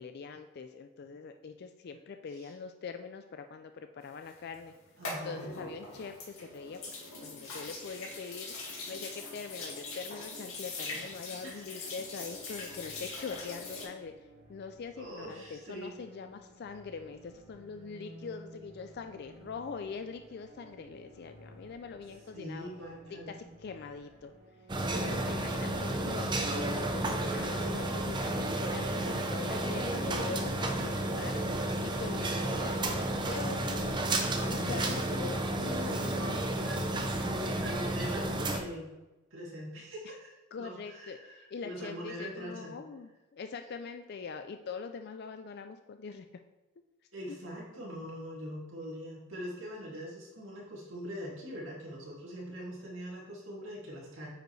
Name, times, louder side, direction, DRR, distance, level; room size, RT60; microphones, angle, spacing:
voice 1, 0.0-4.7 5.2-6.9 7.2-22.7 23.3-23.4 23.6-24.3 24.9-31.4 31.8-32.8 33.3-34.0 34.4-36.2 40.5-46.3 47.3-47.4, left 5 dB, 50° left, 7 dB, 0.3 m, -43 dB
sound 1, 4.3-13.8, left 3 dB, 75° left, 2.2 m, -42 dB
voice 2, 5.0-5.5 11.4-11.7 15.0-15.9 22.3-23.4 24.8-25.3 28.9-29.4 35.9-38.9 39.3-42.8 47.1-54.3, equal, 65° right, -5 dB, 2.4 m, -43 dB
sound 2, 11.1-29.8, right 1 dB, 50° right, 2.2 m, -55 dB
sound 3, 24.7-38.6, right 1 dB, 20° right, 0.6 m, -32 dB
9.1 x 5.1 x 3.2 m, 1.0 s
head